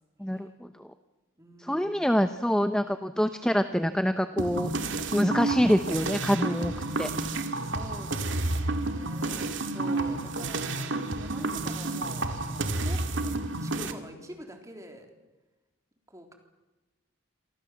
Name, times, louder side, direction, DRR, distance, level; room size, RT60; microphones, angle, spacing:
voice 1, 0.2-0.9 1.6-4.7 5.1-6.7 7.0-7.3, equal, 5° left, 9 dB, 0.8 m, -26 dB
voice 2, 1.4-2.0 7.6-15.1 16.1-16.3, equal, 15° right, 4 dB, 3.6 m, -46 dB
sound 1, 4.4-13.9, right 2 dB, 65° right, 2.2 m, -30 dB
27.5 x 24.5 x 7.4 m, 1.1 s
head